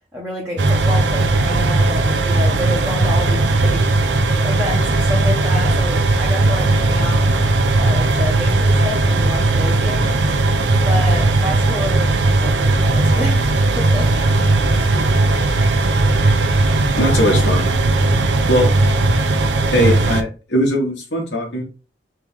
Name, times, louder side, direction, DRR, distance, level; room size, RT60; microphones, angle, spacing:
voice 1, 0.1-3.9 4.4-7.3 7.8-10.3 10.8-14.1, left 1 dB, 15° right, -4 dB, 0.9 m, -28 dB
sound 1, 0.6-20.2, right 2 dB, 80° right, 0.5 m, -17 dB
sound 2, 14.1-19.5, equal, 25° left, 1.1 m, -35 dB
voice 2, 14.6-15.0 17.0-17.7 18.5-18.7 19.7-21.6, equal, 75° left, -1 dB, 1.2 m, -19 dB
3.3 x 3.0 x 3.6 m, 0.33 s
head